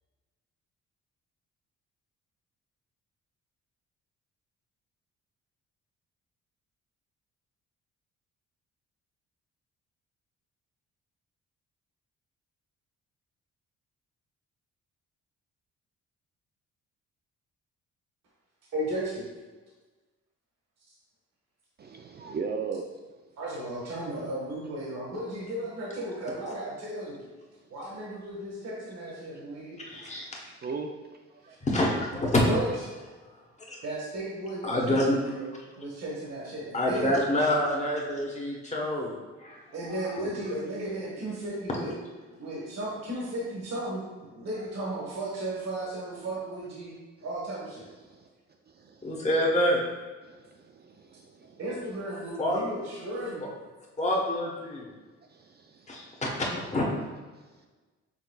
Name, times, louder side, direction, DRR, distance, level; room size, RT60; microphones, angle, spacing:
voice 1, 18.7-19.2 23.4-27.2 27.7-29.8 30.0-30.4 32.5-32.7 33.8-37.2 39.7-41.9 42.3-44.0 44.3-46.9 47.2-47.9 51.6-53.5, right 1 dB, 60° right, -4 dB, 1.4 m, -35 dB
voice 2, 21.8-22.9 30.4-30.9 31.4-31.6 46.1-46.2 48.0-48.3 48.7-49.3 50.2-51.6 55.3-56.2, right 5 dB, 35° right, 3 dB, 0.4 m, -38 dB
voice 3, 29.9-30.4 31.6-32.4 33.7-33.8 34.6-35.2 36.7-39.2 39.4-39.6 40.2-40.3 49.0-49.8 52.4-52.6 54.0-54.9 55.9-56.9, left 1 dB, 25° left, -1 dB, 1.1 m, -27 dB
5.9 x 3.8 x 2.3 m, 1.3 s
cardioid pair, 90°, 30 cm